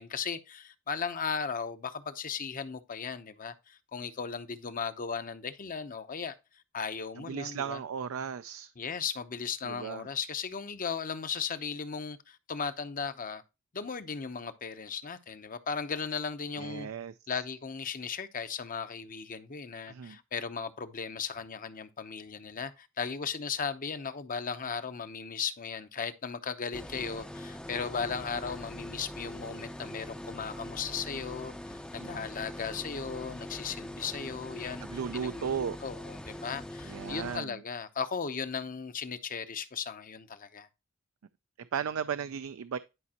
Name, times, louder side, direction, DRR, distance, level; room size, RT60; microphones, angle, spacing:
voice 1, 0.0-6.3 6.7-7.8 8.8-13.4 13.7-16.9 17.3-35.5 35.8-40.7, left 6 dB, 40° left, 0.7 m, -36 dB
voice 2, 7.3-8.7 9.6-10.1 16.6-17.1 19.9-20.2 32.0-32.3 34.8-35.8 36.8-37.6 41.6-42.8, right 7 dB, 75° right, 0.4 m, -35 dB
sound 1, 26.7-37.4, left 1 dB, 5° left, 0.5 m, -43 dB
11.0 x 5.2 x 2.9 m
head